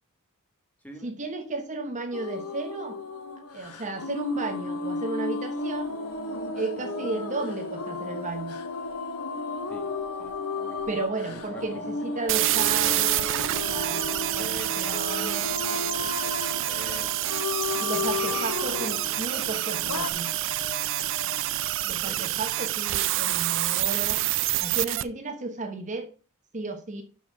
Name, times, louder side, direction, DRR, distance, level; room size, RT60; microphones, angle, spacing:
voice 1, 1.0-3.0 3.5-6.0 6.5-8.6 10.9-13.3 13.7-15.4 17.8-20.3 21.8-24.2 24.6-26.1 26.5-27.0, right 3 dB, 35° right, 1.0 m, -34 dB
sound 1, 2.1-20.1, left 3 dB, 90° left, 0.9 m, -34 dB
sound 2, 5.6-21.9, left 1 dB, 50° left, 1.4 m, -42 dB
voice 2, 10.2-10.9 11.3-11.8 12.2-13.4 14.3-15.0 15.4-17.2 18.0-19.5 21.9-22.4, equal, 5° left, 1.3 m, -45 dB
sound 3, 12.3-25.0, right 16 dB, 60° right, 0.4 m, -27 dB
5.9 x 5.6 x 6.2 m
head